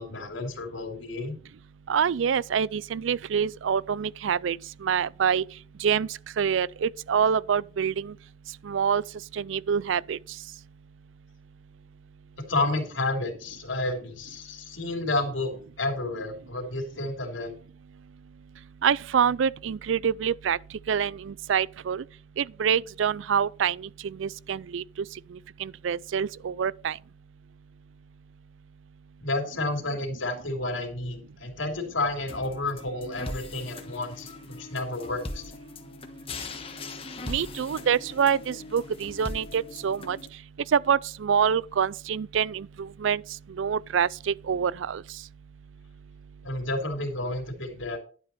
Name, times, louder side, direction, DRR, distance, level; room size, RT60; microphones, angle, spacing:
voice 1, 0.0-1.3 12.4-15.5 15.8-17.5 29.2-35.4 46.4-48.0, left 2 dB, 85° left, 3.1 m, -31 dB
voice 2, 1.9-5.4 5.8-8.1 8.6-9.0 9.3-10.2 18.8-20.6 20.9-22.0 22.4-24.8 25.3-27.0 37.3-40.2 40.7-43.2 43.6-45.0, right 7 dB, 80° right, 0.4 m, -26 dB
sound 1, 32.3-40.3, left 2 dB, 30° left, 1.3 m, -40 dB
11.5 x 8.0 x 4.2 m
head